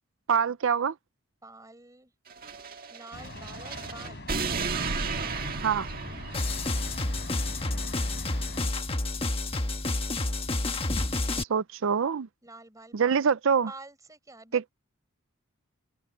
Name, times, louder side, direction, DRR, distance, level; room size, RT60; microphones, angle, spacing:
voice 1, 0.3-0.9 5.6-5.9 11.3-12.3 12.9-13.7 14.5-14.7, right 6 dB, 60° right, 0.4 m, -25 dB
voice 2, 1.4-2.1 2.9-4.3 12.4-13.4 13.7-14.7, right 2 dB, 15° right, 4.7 m, -49 dB
sound 1, 2.3-7.1, right 4 dB, 45° right, 1.7 m, -34 dB
sound 2, 3.1-8.7, left 2 dB, 50° left, 6.3 m, -43 dB
sound 3, 6.3-11.4, left 2 dB, 25° left, 1.3 m, -29 dB
head